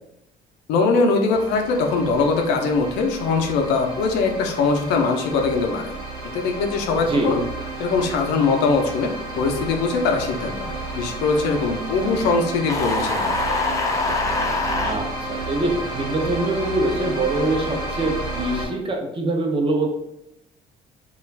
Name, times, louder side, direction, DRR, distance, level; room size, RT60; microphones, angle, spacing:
voice 1, 0.7-6.0 6.3-7.4 7.8-13.5, left 4 dB, 90° left, 3 dB, 0.5 m, -22 dB
sound 1, 1.3-18.7, right 2 dB, 75° right, 1.1 m, -32 dB
sound 2, 12.7-15.0, left 3 dB, 20° left, 0.4 m, -24 dB
voice 2, 14.8-19.9, right 2 dB, 30° right, 1 dB, 0.6 m, -24 dB
2.4 x 2.3 x 3.1 m, 0.85 s
cardioid pair, 110°, 17 cm